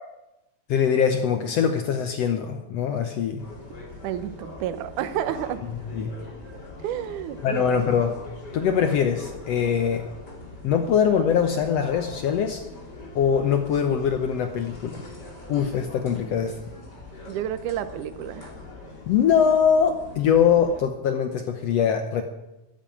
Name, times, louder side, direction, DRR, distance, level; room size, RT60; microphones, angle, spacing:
voice 1, 0.7-3.4 5.8-6.1 7.4-8.2 8.5-10.0 10.6-12.6 13.1-15.0 15.5-16.6 19.1-22.2, left 7 dB, 85° left, 7 dB, 1.4 m, -22 dB
sound 1, 3.4-20.8, left 2 dB, 30° left, 3.0 m, -42 dB
voice 2, 4.0-5.6 6.8-7.6 17.3-18.5, right 11 dB, 70° right, 11 dB, 2.1 m, -30 dB
13.5 x 11.0 x 8.7 m, 0.94 s
omnidirectional pair, 4.2 m